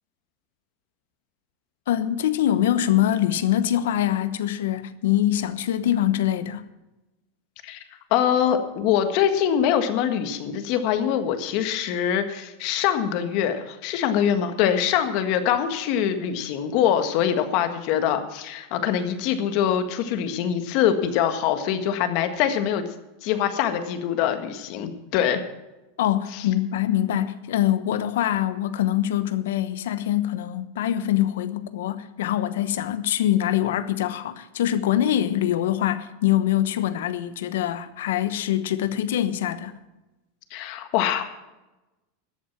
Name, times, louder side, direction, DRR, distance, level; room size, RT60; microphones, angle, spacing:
voice 1, 1.9-6.7 26.0-39.8, left 12 dB, 85° left, 1.0 m, -24 dB
voice 2, 8.1-22.8 23.2-25.4 26.3-26.4 40.5-41.4, left 9 dB, 50° left, 1.6 m, -24 dB
13.5 x 8.6 x 7.2 m
supercardioid pair, 150°, 0 cm